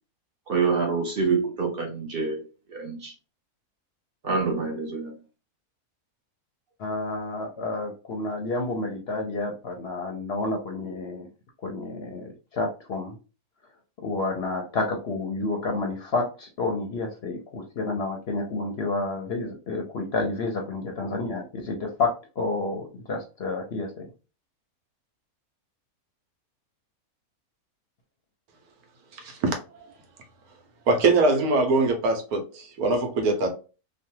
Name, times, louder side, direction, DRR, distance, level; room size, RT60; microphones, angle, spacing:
voice 1, 0.5-2.4 2.7-3.1 4.2-5.2, right 4 dB, 50° right, 0.7 m, -26 dB
voice 2, 6.8-11.3 11.6-13.2 14.0-24.1, left 3 dB, 60° left, 0.7 m, -30 dB
voice 3, 29.1-29.9 30.9-33.5, right 3 dB, 80° right, 1.3 m, -23 dB
3.0 x 2.2 x 2.8 m
omnidirectional pair, 1.6 m